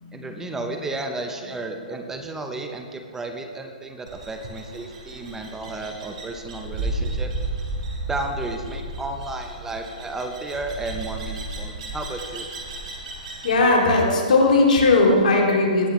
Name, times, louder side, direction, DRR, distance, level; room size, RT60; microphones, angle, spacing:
voice 1, 0.1-7.3 8.1-12.5, right 2 dB, 10° right, 5 dB, 0.6 m, -33 dB
sound 1, 4.1-13.6, right 2 dB, 55° right, 2.7 m, -33 dB
voice 2, 13.4-15.9, left 2 dB, 70° left, -1 dB, 2.6 m, -17 dB
18.0 x 7.7 x 3.1 m, 2.1 s
hypercardioid pair, 140°, 5 cm